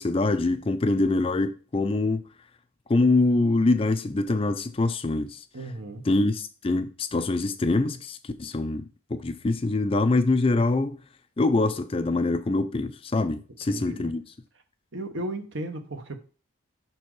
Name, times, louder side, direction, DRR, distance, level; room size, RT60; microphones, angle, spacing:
voice 1, 0.0-2.2 2.9-5.4 6.0-8.8 9.1-11.0 11.4-14.2, left 2 dB, 25° left, 0.4 m, -24 dB
voice 2, 5.5-6.1 13.7-14.1 14.9-16.2, right 1 dB, 60° right, 0.9 m, -35 dB
6.1 x 4.4 x 4.6 m
head